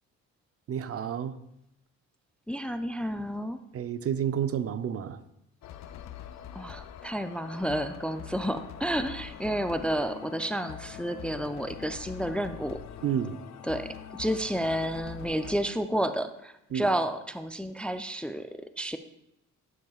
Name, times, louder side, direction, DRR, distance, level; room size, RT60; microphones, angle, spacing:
voice 1, 0.7-1.4 3.7-5.2 13.0-13.4 16.7-16.9, right 9 dB, 50° right, 0.6 m, -30 dB
voice 2, 2.5-3.6 6.5-12.8 13.7-19.0, right 1 dB, 5° left, 0.4 m, -31 dB
sound 1, 5.6-15.6, left 10 dB, 65° left, 0.6 m, -44 dB
11.5 x 9.7 x 2.4 m
cardioid pair, 90°, 30 cm